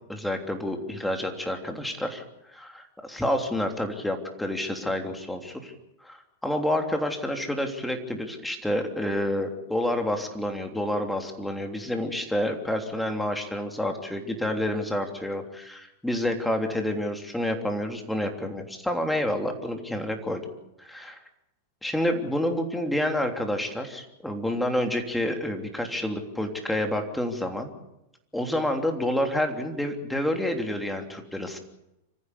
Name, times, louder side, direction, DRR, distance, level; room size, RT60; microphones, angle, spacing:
voice 1, 0.1-5.7 6.0-6.2 6.4-20.5 20.8-21.2 21.8-27.7 28.3-31.6, left 1 dB, 5° left, 4 dB, 3.2 m, -29 dB
26.0 x 15.0 x 8.3 m, 0.90 s
figure-of-eight pair, 95°, 0 cm